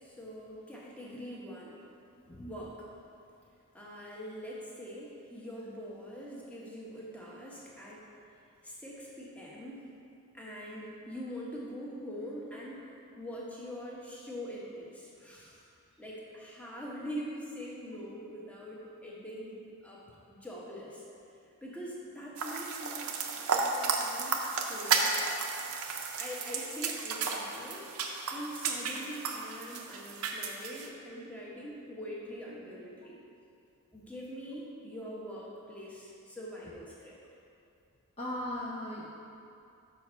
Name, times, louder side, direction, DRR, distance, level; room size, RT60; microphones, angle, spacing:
voice 1, 0.0-1.8 2.4-2.9 3.7-8.0 8.6-9.9 10.3-12.9 13.2-15.7 16.0-19.6 19.8-20.0 20.3-21.0 21.6-25.1 26.2-27.9 28.3-33.2 33.9-37.2, equal, 5° left, -5 dB, 1.0 m, -43 dB
sound 1, 22.4-30.9, right 5 dB, 70° right, 0.6 m, -33 dB
voice 2, 38.2-39.2, left 1 dB, 30° left, -5 dB, 0.6 m, -37 dB
5.4 x 4.6 x 6.1 m, 2.6 s
head